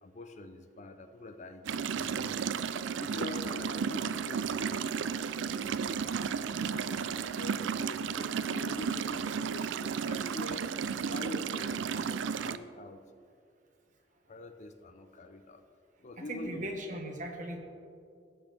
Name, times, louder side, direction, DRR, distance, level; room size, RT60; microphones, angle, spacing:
voice 1, 0.0-2.5 3.0-6.2 6.6-10.7 11.1-13.0 14.3-15.6 16.0-16.7, left 2 dB, 40° left, 8 dB, 0.5 m, -45 dB
sound 1, 1.6-12.6, right 6 dB, 85° right, 0.4 m, -33 dB
voice 2, 16.2-17.6, right 1 dB, 45° right, 2 dB, 1.3 m, -38 dB
18.0 x 6.1 x 3.4 m, 2.4 s
head